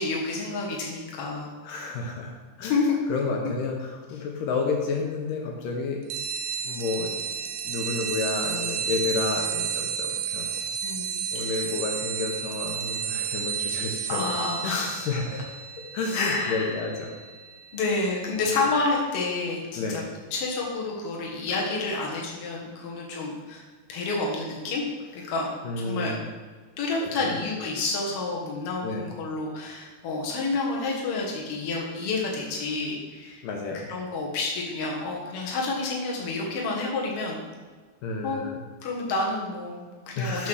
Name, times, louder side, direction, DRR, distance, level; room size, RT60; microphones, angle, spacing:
voice 1, 0.0-1.5 2.6-3.0 10.8-11.7 14.1-15.1 16.1-16.8 17.7-20.0 20.3-23.6 23.9-24.9 25.1-25.5 25.8-26.1 26.8-33.4 33.9-37.4 38.2-38.4 38.8-40.5, left 3 dB, 55° left, -2 dB, 2.1 m, -29 dB
voice 2, 1.6-2.3 2.6-2.8 3.1-6.0 6.6-7.1 7.6-10.5 11.3-14.2 14.6-15.4 15.9-17.1 19.8-20.0 25.6-26.2 27.0-27.3 28.8-29.0 33.4-33.9 38.0-38.5 40.2-40.5, left 4 dB, 75° left, 1 dB, 2.5 m, -30 dB
sound 1, 6.1-18.2, right 7 dB, 90° right, 2.3 m, -32 dB
8.1 x 4.2 x 6.3 m, 1.5 s
omnidirectional pair, 4.0 m